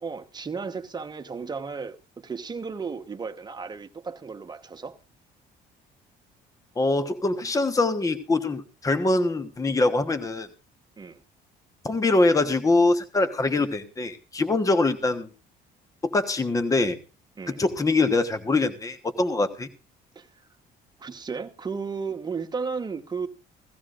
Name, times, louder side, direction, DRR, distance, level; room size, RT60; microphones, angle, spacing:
voice 1, 0.0-5.0 11.0-11.2 17.4-17.6 20.1-20.3 21.0-23.3, right 5 dB, 25° right, 1.2 m, -34 dB
voice 2, 6.8-10.5 11.8-15.3 16.0-17.0 17.5-19.7, left 2 dB, 20° left, 1.2 m, -23 dB
17.5 x 14.5 x 2.6 m
cardioid pair, 110°, 17 cm